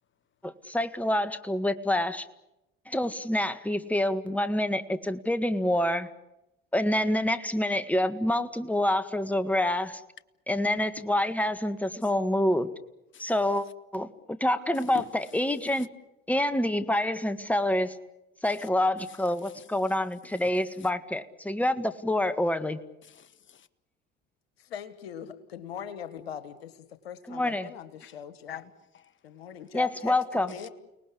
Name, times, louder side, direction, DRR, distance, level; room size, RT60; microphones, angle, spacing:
voice 1, 0.4-2.3 2.9-6.1 6.7-10.0 10.5-12.7 13.2-13.7 13.9-14.1 14.4-15.9 16.3-18.0 18.4-22.8 27.3-27.7 29.7-30.5, left 1 dB, 5° left, 1.7 m, -27 dB
voice 2, 14.7-15.1 15.8-15.9 18.4-18.7 19.1-19.2 19.4-19.7 20.2-20.5 20.8-20.9 23.0-23.7 28.0-28.2 28.5-29.2 30.5-30.7, left 9 dB, 40° left, 1.3 m, -47 dB
voice 3, 24.7-28.6 29.2-30.7, left 9 dB, 90° left, 1.6 m, -41 dB
30.0 x 19.5 x 8.5 m
hypercardioid pair, 60°, 30 cm